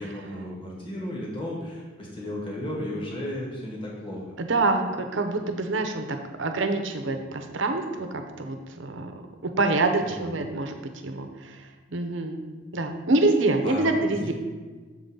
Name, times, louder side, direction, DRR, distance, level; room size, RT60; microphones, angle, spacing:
voice 1, 0.0-4.3 10.0-10.4 13.6-14.3, left 1 dB, 25° left, -3 dB, 1.6 m, -34 dB
voice 2, 4.4-6.0 6.4-10.8 11.0-11.6 11.9-12.5 12.7-14.5, right 2 dB, 65° right, 6 dB, 0.7 m, -26 dB
7.5 x 3.8 x 5.4 m, 1.4 s
head